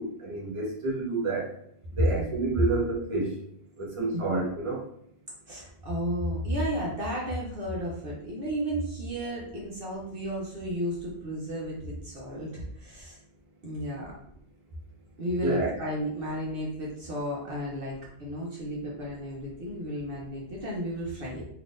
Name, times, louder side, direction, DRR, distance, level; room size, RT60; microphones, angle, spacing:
voice 1, 0.0-1.5 1.9-3.3 3.8-4.8 15.4-15.7, right 3 dB, 30° right, -4 dB, 0.9 m, -29 dB
voice 2, 5.5-13.2 13.6-14.1 15.2-21.4, equal, 60° right, -4 dB, 0.9 m, -33 dB
3.6 x 2.8 x 2.5 m, 0.70 s
omnidirectional pair, 1.1 m